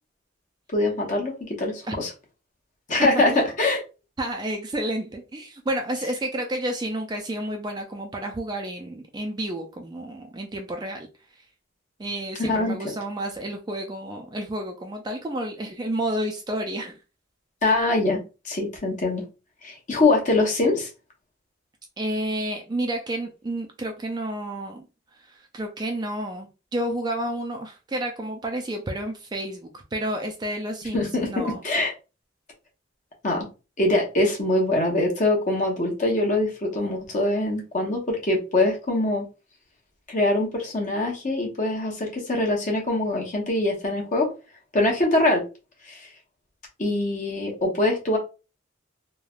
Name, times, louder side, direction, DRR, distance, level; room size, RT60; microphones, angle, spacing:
voice 1, 0.7-2.1 2.9-3.8 12.4-12.7 17.6-19.2 19.6-20.9 30.9-31.9 33.2-33.5 33.8-39.2 40.1-44.3 44.7-45.4 45.9-46.0 46.8-48.2, left 2 dB, 40° left, 0 dB, 0.9 m, -23 dB
voice 2, 3.0-3.5 4.2-11.1 11.4-11.5 12.0-17.0 22.0-24.9 25.1-31.6, right 1 dB, 20° right, 3 dB, 0.3 m, -30 dB
3.2 x 2.2 x 2.4 m, 0.31 s
head